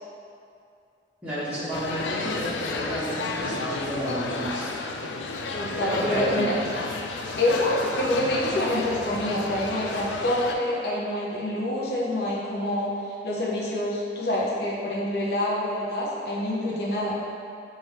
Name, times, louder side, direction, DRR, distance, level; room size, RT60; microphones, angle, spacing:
voice 1, 1.2-4.7 5.8-6.4, equal, 10° right, -12 dB, 1.1 m, -31 dB
sound 1, 1.7-10.6, left 3 dB, 90° left, 0.3 m, -32 dB
voice 2, 5.5-6.5 7.4-17.2, left 1 dB, 65° left, -5 dB, 0.7 m, -26 dB
3.3 x 2.5 x 4.2 m, 2.5 s
head